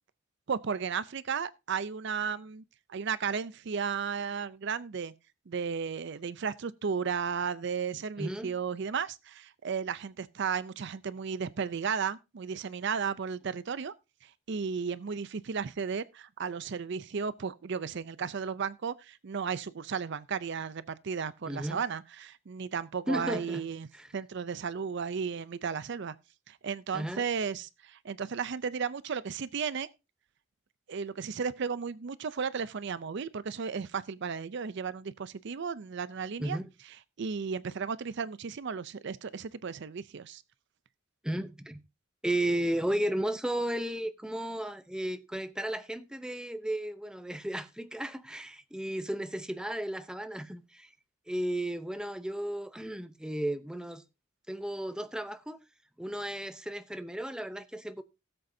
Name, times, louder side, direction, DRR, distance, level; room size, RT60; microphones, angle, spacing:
voice 1, 0.5-2.6 2.9-5.1 5.5-13.9 14.2-23.9 24.1-26.1 26.5-29.9 30.9-36.6 37.2-40.4, right 6 dB, 55° right, 0.5 m, -34 dB
voice 2, 8.2-8.5 21.5-21.8 23.1-23.6 23.9-24.1 26.9-27.2 36.4-36.7 41.2-41.8 42.2-50.9 51.3-54.0 54.5-55.6 56.0-58.0, right 1 dB, 5° right, 0.7 m, -34 dB
17.5 x 7.7 x 2.7 m
head